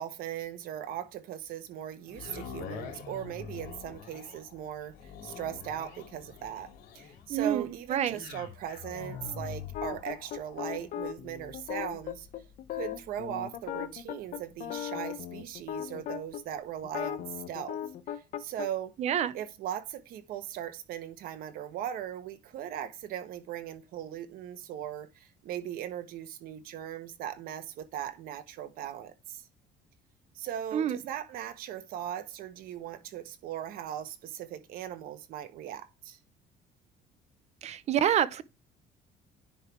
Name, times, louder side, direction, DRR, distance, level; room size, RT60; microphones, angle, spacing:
voice 1, 0.0-12.3 12.7-17.8 18.1-18.9 19.3-29.5 30.3-36.2, right 10 dB, 65° right, 1.2 m, -39 dB
sound 1, 2.1-16.3 16.8-16.9, left 6 dB, 75° left, 2.4 m, -46 dB
voice 2, 7.3-8.2 19.0-19.3 30.7-31.0 37.6-38.4, right 9 dB, 45° right, 0.6 m, -27 dB
sound 2, 9.7-16.4 16.8-18.7, left 10 dB, 55° left, 0.9 m, -37 dB
10.0 x 3.5 x 4.5 m
cardioid pair, 150°, 16 cm